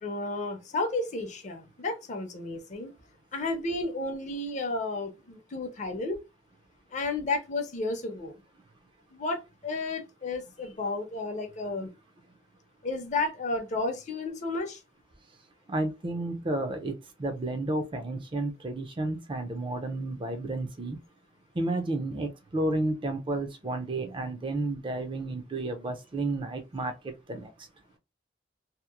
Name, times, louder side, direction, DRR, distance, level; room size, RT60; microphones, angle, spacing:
voice 1, 0.0-2.9 3.3-6.2 6.9-8.3 9.1-11.9 12.8-14.8, left 2 dB, 40° left, 0.6 m, -32 dB
voice 2, 15.7-21.0 21.6-27.5, right 2 dB, 30° right, 0.4 m, -32 dB
2.8 x 2.0 x 2.3 m
head